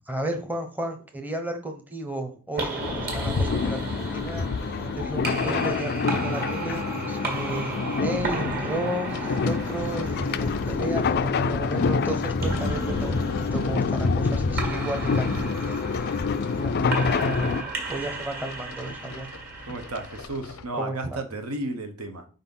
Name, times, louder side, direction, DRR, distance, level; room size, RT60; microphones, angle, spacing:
voice 1, 0.0-13.2 13.5-16.2 16.6-19.3 20.7-21.2, right 1 dB, 10° right, 4 dB, 0.8 m, -34 dB
sound 1, 2.5-20.2, right 3 dB, 45° right, 1.8 m, -35 dB
sound 2, 2.8-17.6, left 4 dB, 45° left, 0.4 m, -27 dB
sound 3, 9.1-20.7, left 4 dB, 85° left, 0.7 m, -41 dB
voice 2, 19.7-22.3, right 2 dB, 70° right, 6 dB, 1.0 m, -33 dB
5.0 x 4.1 x 5.5 m, 0.38 s
head